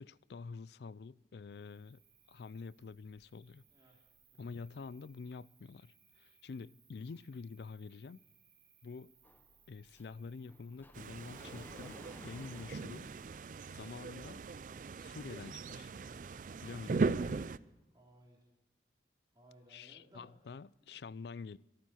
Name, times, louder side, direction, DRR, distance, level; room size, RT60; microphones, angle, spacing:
voice 1, 0.0-2.0 2.3-3.6 4.4-8.2 8.8-9.1 9.7-13.1 13.7-14.5 15.0-15.9 16.6-17.1 19.7-21.6, left 4 dB, 65° left, 0.4 m, -47 dB
Cricket, 1.5-13.4, right 7 dB, 70° right, 6.2 m, -69 dB
Sliding door, 9.2-14.2, left 1 dB, 10° left, 0.7 m, -58 dB
sound 1, 10.9-17.6, right 4 dB, 45° right, 0.4 m, -39 dB
voice 2, 17.9-18.4 19.3-20.3 20.8-21.0, equal, 25° right, 3.3 m, -61 dB
25.0 x 9.4 x 4.4 m
head